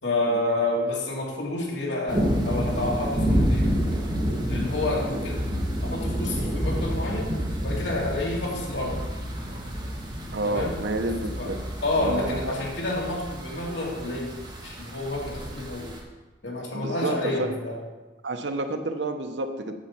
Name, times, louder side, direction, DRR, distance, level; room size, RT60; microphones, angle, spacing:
voice 1, 0.0-3.7 4.5-5.4 5.8-7.3 7.6-9.0 10.4-10.8 11.4-11.5 11.8-15.9 16.4-17.8, left 2 dB, 75° left, -2 dB, 2.4 m, -29 dB
sound 1, 2.1-16.0, equal, 25° right, 1.7 m, -29 dB
voice 2, 10.3-11.6 11.9-12.7 16.7-17.6 18.2-19.7, right 2 dB, 75° right, 6 dB, 0.9 m, -30 dB
8.8 x 5.5 x 7.2 m, 1.2 s
head